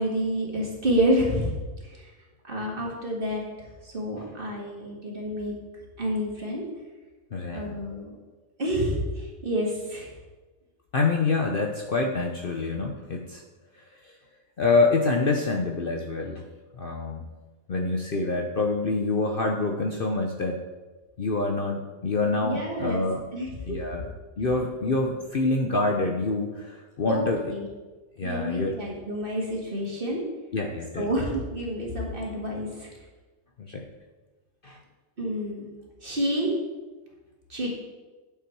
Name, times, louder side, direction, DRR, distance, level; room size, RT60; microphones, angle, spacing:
voice 1, 0.0-1.6 1.8-2.1 2.5-5.5 6.0-6.7 7.5-8.1 8.6-10.1 22.4-23.8 27.1-27.2 27.5-27.7 28.2-30.2 31.0-32.9 35.2-35.7 36.0-36.5 37.5-37.7, equal, 40° right, -2 dB, 2.3 m, -29 dB
voice 2, 7.3-7.7 10.9-13.4 14.6-16.4 16.8-17.3 17.7-20.6 21.2-23.2 23.7-24.1 24.4-27.4 28.2-28.8 30.5-31.1 33.6-33.8 34.6-34.8, left 3 dB, 50° left, 2 dB, 0.8 m, -26 dB
9.4 x 7.2 x 4.6 m, 1.2 s
omnidirectional pair, 1.4 m